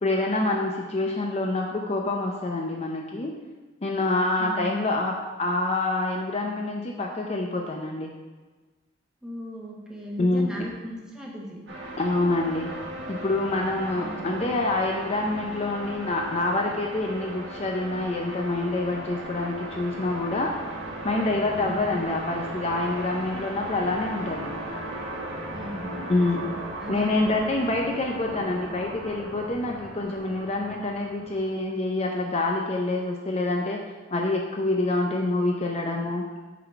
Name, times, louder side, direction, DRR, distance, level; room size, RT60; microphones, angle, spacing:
voice 1, 0.0-3.3 3.8-5.1 5.4-8.1 10.2-10.5 12.0-12.7 13.1-20.5 21.0-24.5 26.1-26.4 26.9-36.3, left 2 dB, 35° left, 1 dB, 0.5 m, -26 dB
voice 2, 4.4-4.7 9.2-11.6 13.9-14.4 21.7-21.9 25.5-26.5 26.8-27.3, equal, 5° right, -3 dB, 1.1 m, -37 dB
sound 1, 11.7-31.6, right 1 dB, 75° right, 1.5 m, -37 dB
8.3 x 4.0 x 4.5 m, 1.3 s
head